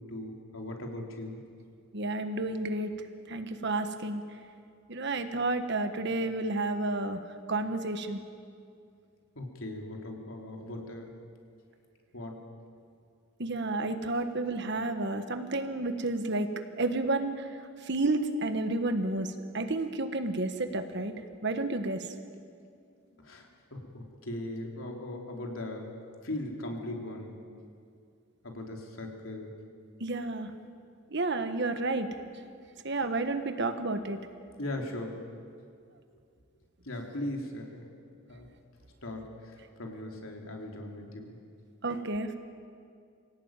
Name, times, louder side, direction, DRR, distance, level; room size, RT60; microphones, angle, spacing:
voice 1, 0.1-1.4 9.4-11.1 12.1-12.4 23.2-25.9 26.2-27.3 28.4-29.5 34.6-35.2 36.8-37.8 38.3-38.5 39.0-39.3 39.5-41.4, left 1 dB, 70° left, 1 dB, 3.5 m, -39 dB
voice 2, 1.9-2.9 3.3-4.2 4.9-7.2 7.5-8.2 13.4-16.5 16.8-17.5 17.9-21.1 21.4-22.1 30.0-30.5 31.1-32.1 32.8-34.2 41.8-42.4, right 2 dB, 50° right, 8 dB, 1.4 m, -31 dB
25.5 x 17.0 x 9.0 m, 2.3 s
head